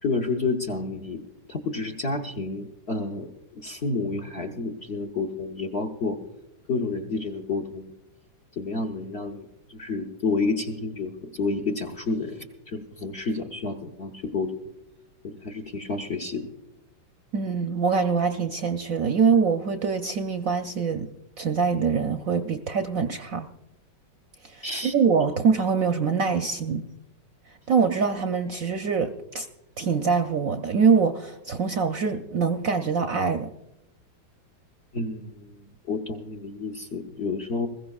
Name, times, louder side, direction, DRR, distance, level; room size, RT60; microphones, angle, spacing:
voice 1, 0.0-1.2 1.5-6.2 6.7-7.9 8.6-14.5 15.2-16.5 24.6-24.9 34.9-37.7, left 3 dB, 50° left, 1 dB, 0.8 m, -30 dB
voice 2, 17.3-21.1 21.4-23.5 24.4-26.9 27.7-29.5 29.8-33.5, right 5 dB, 65° right, 6 dB, 0.9 m, -24 dB
21.0 x 15.5 x 2.4 m, 0.94 s
omnidirectional pair, 2.0 m